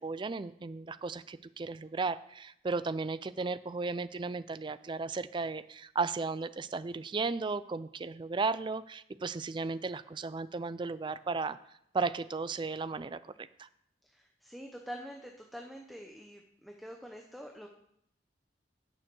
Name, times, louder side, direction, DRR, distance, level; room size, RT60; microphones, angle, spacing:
voice 1, 0.0-11.6 11.9-13.7, right 4 dB, 25° right, 15 dB, 0.4 m, -35 dB
voice 2, 14.1-17.7, equal, ahead, 1 dB, 0.8 m, -46 dB
8.9 x 6.7 x 6.2 m, 0.72 s
head